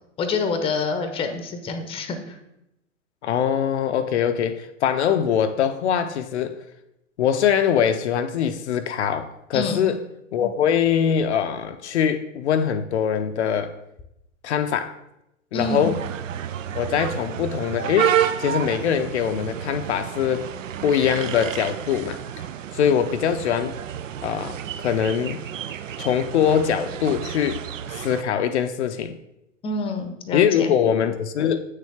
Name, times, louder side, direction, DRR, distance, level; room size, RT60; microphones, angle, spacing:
voice 1, 0.2-2.4 9.5-9.8 15.5-15.9 29.6-30.7, left 4 dB, 15° left, 8 dB, 0.7 m, -27 dB
voice 2, 3.2-6.6 7.2-10.0 10.3-13.7 14.4-14.9 15.5-16.0 16.7-20.5 20.8-22.2 22.7-23.7 24.2-25.4 26.0-27.6 27.9-29.2 30.3-31.6, left 8 dB, 60° left, 7 dB, 0.6 m, -22 dB
sound 1, 15.6-28.2, right 9 dB, 75° right, 0.5 m, -30 dB
8.2 x 6.5 x 3.4 m, 0.85 s
figure-of-eight pair, 105°, 38 cm